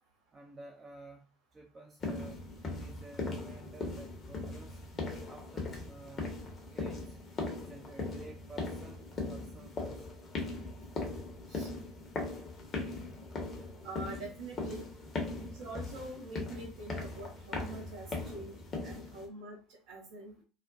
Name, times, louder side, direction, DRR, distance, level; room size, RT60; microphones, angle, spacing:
voice 1, 0.3-4.8 5.3-6.3 6.7-7.2 7.6-10.2 15.3-15.5 18.0-18.5 20.4-20.5, right 2 dB, 25° right, 0.4 m, -53 dB
sound 1, 2.0-19.3, left 3 dB, 35° left, 0.8 m, -39 dB
voice 2, 13.8-14.9 15.4-20.3, right 2 dB, 60° right, 0.7 m, -45 dB
2.5 x 2.1 x 2.5 m
figure-of-eight pair, 65°, 0 cm